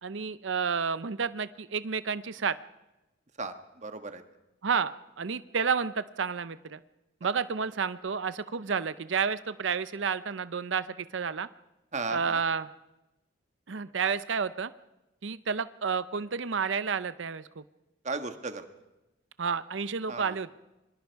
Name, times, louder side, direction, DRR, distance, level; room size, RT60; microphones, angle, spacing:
voice 1, 0.0-2.6 4.6-6.8 7.2-11.5 12.1-12.7 13.7-14.7 15.2-17.6 19.4-20.5, right 6 dB, 80° right, 14 dB, 0.6 m, -30 dB
voice 2, 3.4-4.2 11.9-12.4 18.0-18.6 20.1-20.4, right 3 dB, 40° right, 8 dB, 1.5 m, -35 dB
26.5 x 23.5 x 4.7 m, 0.99 s
head